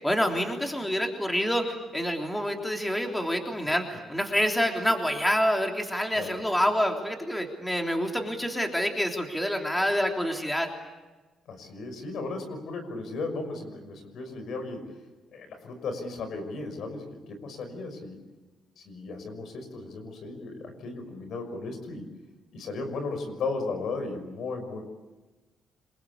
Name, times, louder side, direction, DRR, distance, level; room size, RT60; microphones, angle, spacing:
voice 1, 0.0-10.7, equal, 5° left, 2 dB, 3.4 m, -27 dB
voice 2, 11.5-15.0 15.3-18.2 18.8-22.1 22.5-24.8, left 3 dB, 70° left, 7 dB, 6.0 m, -35 dB
26.5 x 22.5 x 8.5 m, 1.2 s
cardioid pair, 90°, 0 cm